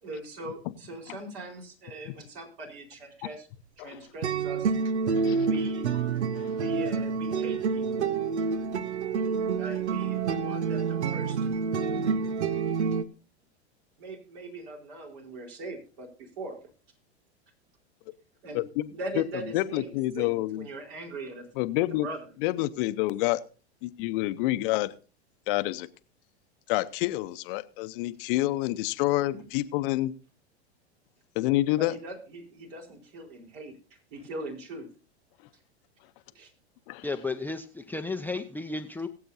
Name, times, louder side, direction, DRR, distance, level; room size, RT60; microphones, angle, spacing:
voice 1, 0.0-3.5 3.8-4.7 5.4-5.9 6.5-8.1 9.6-11.5 11.8-12.1 14.0-16.7 18.4-18.6 18.9-21.5 22.0-22.3 29.3-29.5 31.7-33.7 34.1-34.9 36.3-36.5, right 2 dB, 60° right, 1 dB, 4.4 m, -40 dB
sound 1, 4.2-13.0, right 5 dB, 85° right, 0.8 m, -28 dB
voice 2, 5.1-5.5 6.4-6.5 18.5-18.8 19.2-19.3 19.5-20.7 21.6-22.1 22.4-23.4 23.8-24.9 25.5-25.9 26.7-30.1 31.4-32.0 36.9-37.0, left 17 dB, 55° left, 12 dB, 0.8 m, -28 dB
voice 3, 37.0-39.1, left 3 dB, 5° left, 5 dB, 0.6 m, -33 dB
22.0 x 7.8 x 2.7 m, 0.35 s
hypercardioid pair, 100°, 33 cm